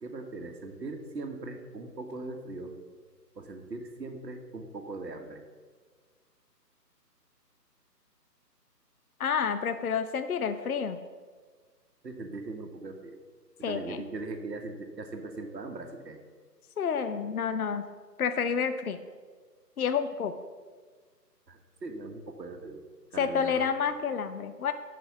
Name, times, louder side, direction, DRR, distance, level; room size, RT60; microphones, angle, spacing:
voice 1, 0.0-2.7 3.3-5.4 12.0-13.2 13.6-16.2 21.5-22.8 23.1-23.7, right 3 dB, 80° right, 4 dB, 1.5 m, -40 dB
voice 2, 9.2-11.0 13.6-14.0 16.8-17.8 18.2-19.0 19.8-20.3 23.2-24.7, left 6 dB, 60° left, 10 dB, 0.7 m, -29 dB
9.1 x 6.1 x 5.9 m, 1.5 s
figure-of-eight pair, 155°, 50 cm